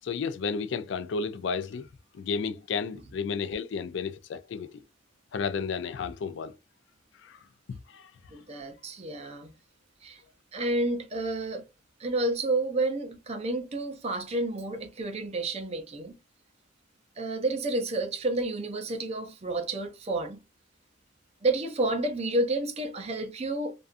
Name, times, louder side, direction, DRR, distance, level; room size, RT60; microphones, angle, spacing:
voice 1, 0.0-1.9 2.1-4.8 5.3-6.5 7.2-7.4 7.7-8.1, left 5 dB, 60° left, 0.3 m, -32 dB
voice 2, 8.3-9.5 10.0-10.2 10.5-11.6 12.0-16.2 17.2-20.4 21.4-23.7, right 2 dB, 30° right, 0.5 m, -30 dB
2.4 x 2.3 x 2.4 m
head